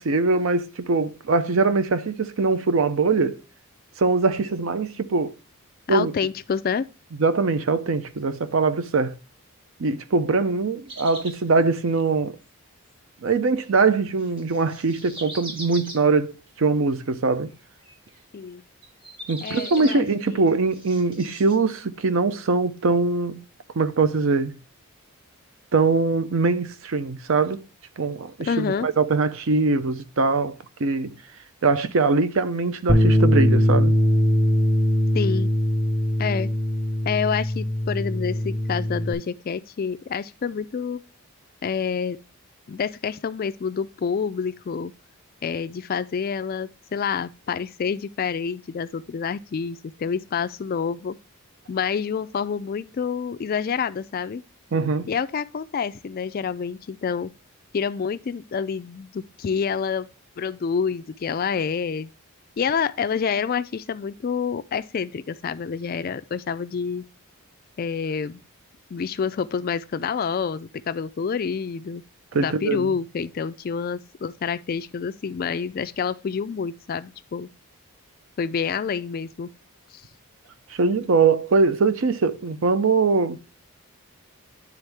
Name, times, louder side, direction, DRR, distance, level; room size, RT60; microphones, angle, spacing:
voice 1, 0.0-3.4 4.0-5.3 5.9-6.1 7.2-9.2 9.8-12.4 13.2-17.5 19.3-23.4 23.7-24.6 25.7-27.6 28.0-30.5 30.8-31.2 31.6-33.9 54.7-55.1 72.3-72.9 80.7-83.4, right 4 dB, 60° right, 0.5 m, -22 dB
voice 2, 5.9-6.9 18.3-18.6 19.4-20.5 28.4-28.9 35.1-35.5 36.2-36.5 37.1-41.0 41.6-42.2 42.7-44.9 45.4-51.2 51.7-54.4 55.1-57.3 57.7-60.1 60.4-62.1 62.6-67.1 67.8-68.4 68.9-72.0 72.3-77.5 78.4-79.5, left 6 dB, 40° left, 0.3 m, -28 dB
sound 1, 10.9-11.4 14.2-16.0 17.0-17.3 17.8-18.2 18.8-20.1 20.5-21.6, right 1 dB, 25° right, 1.0 m, -39 dB
Bass guitar, 32.9-39.1, left 1 dB, ahead, 0.6 m, -21 dB
9.8 x 3.5 x 3.3 m
head